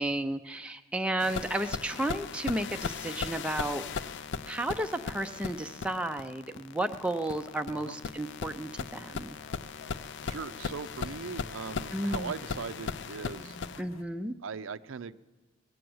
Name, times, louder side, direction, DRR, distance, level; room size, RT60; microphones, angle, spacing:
voice 1, 0.0-3.9 4.5-9.4 11.9-12.3 13.8-14.3, right 1 dB, 5° right, 5 dB, 0.4 m, -33 dB
sound 1, 1.2-13.8, left 5 dB, 60° left, 0.4 m, -38 dB
sound 2, 8.9-14.0, left 2 dB, 85° left, 1.1 m, -51 dB
voice 2, 10.2-13.6 14.4-15.2, right 5 dB, 75° right, 13 dB, 0.5 m, -39 dB
19.5 x 7.8 x 7.8 m, 1.3 s
head